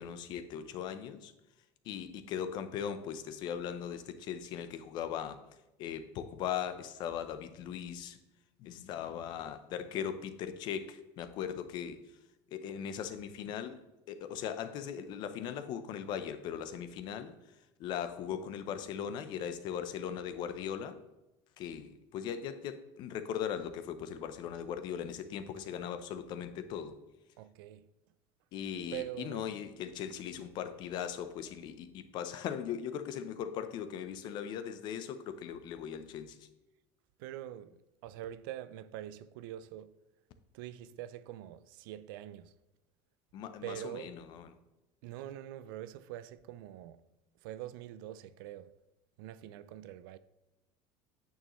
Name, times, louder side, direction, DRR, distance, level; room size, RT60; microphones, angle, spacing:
voice 1, 0.0-1.3 1.8-5.4 5.8-8.2 8.6-12.2 12.5-13.8 14.1-21.0 21.6-27.0 28.5-36.5 43.3-44.6, left 8 dB, 40° left, 0.6 m, -39 dB
voice 2, 27.4-27.9 28.9-29.5 37.2-39.9 40.5-42.6 43.6-44.1 45.0-47.0 47.4-48.7 49.2-50.2, right 12 dB, 90° right, 0.5 m, -44 dB
9.3 x 6.4 x 3.1 m
cardioid pair, 170°, 11 cm